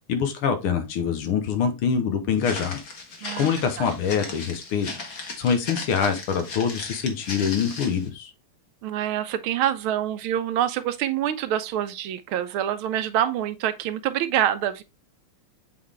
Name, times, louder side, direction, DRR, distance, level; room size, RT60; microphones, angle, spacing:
voice 1, 0.1-2.8 3.4-4.9 5.4-8.3, left 7 dB, 75° left, 1.9 m, -25 dB
Walk footsteps, 2.4-8.1, left 3 dB, 45° left, 1.6 m, -37 dB
voice 2, 8.8-14.8, right 11 dB, 80° right, 1.4 m, -26 dB
7.7 x 4.0 x 3.3 m
omnidirectional pair, 2.4 m